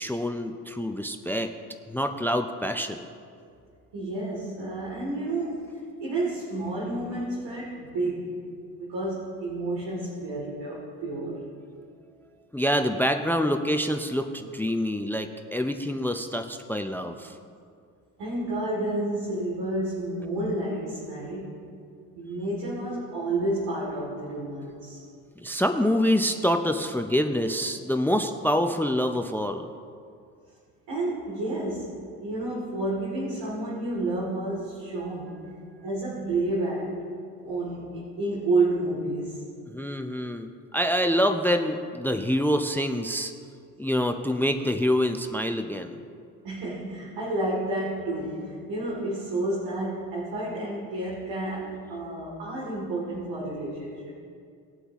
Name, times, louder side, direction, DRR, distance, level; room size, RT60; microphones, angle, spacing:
voice 1, 0.0-1.5 1.9-3.0 12.5-17.4 25.4-29.7 39.7-43.3 43.8-45.9, equal, 5° left, 7 dB, 0.7 m, -26 dB
voice 2, 3.9-8.4 8.8-11.4 18.2-21.6 22.1-25.0 30.9-35.5 35.8-37.0 37.4-39.4 46.4-54.1, right 2 dB, 60° right, -6 dB, 3.0 m, -30 dB
20.0 x 7.9 x 3.1 m, 2.3 s
hypercardioid pair, 65°, 46 cm